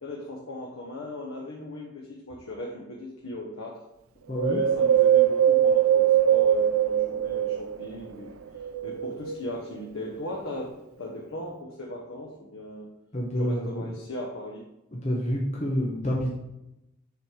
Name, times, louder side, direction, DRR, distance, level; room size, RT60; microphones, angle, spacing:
voice 1, 0.0-3.8 4.4-12.9 13.4-14.7, left 1 dB, 80° left, -1 dB, 1.1 m, -38 dB
voice 2, 4.3-4.6 13.1-13.9 14.9-16.3, equal, 30° left, -3 dB, 1.2 m, -28 dB
Wind, 4.4-7.9 8.5-9.7 10.3-10.4, right 10 dB, 90° right, 0.5 m, -22 dB
7.1 x 6.5 x 4.8 m, 0.92 s
head